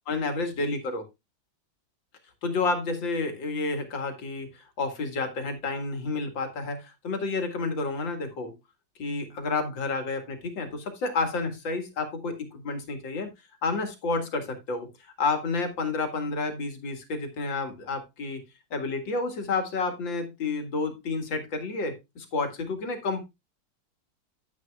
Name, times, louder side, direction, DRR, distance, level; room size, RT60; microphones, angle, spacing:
voice 1, 0.1-1.0 2.4-8.5 9.0-13.3 13.6-14.9 15.2-18.4 18.7-23.2, left 3 dB, 75° left, 6 dB, 2.6 m, -30 dB
10.5 x 9.8 x 2.3 m, 0.22 s
omnidirectional pair, 2.1 m